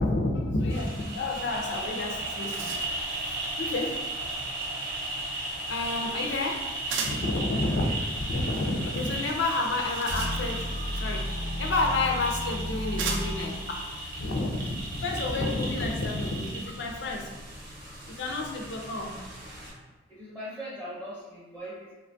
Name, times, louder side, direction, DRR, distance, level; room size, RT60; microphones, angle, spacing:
voice 1, 0.0-2.7 3.6-4.0 5.7-6.6 7.0-7.9 8.1-10.7 11.0-13.8 14.2-17.3 18.1-19.2, left 2 dB, 60° left, 1 dB, 0.4 m, -30 dB
sound 1, 0.7-19.7, right 2 dB, 45° right, 0.7 m, -36 dB
sound 2, 2.2-3.1 6.9-7.3 9.6-10.8 11.9-12.0 13.0-13.5, right 5 dB, 65° right, 0.4 m, -35 dB
voice 2, 7.4-7.9 20.1-21.9, equal, 10° right, -10 dB, 0.5 m, -40 dB
sound 3, 10.1-13.9, left 1 dB, 90° left, 0.7 m, -33 dB
2.9 x 2.2 x 2.5 m, 1.2 s
head